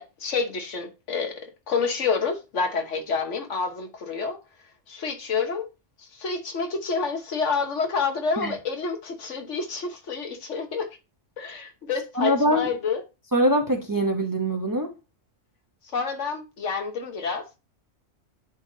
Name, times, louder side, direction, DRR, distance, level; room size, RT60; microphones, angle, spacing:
voice 1, 0.0-4.4 4.9-5.7 6.0-10.9 11.4-13.0 15.9-17.6, left 5 dB, 80° left, 1.5 m, -28 dB
voice 2, 12.2-12.7 13.3-14.9, equal, 20° right, 0.7 m, -23 dB
10.5 x 3.5 x 2.7 m
omnidirectional pair, 1.2 m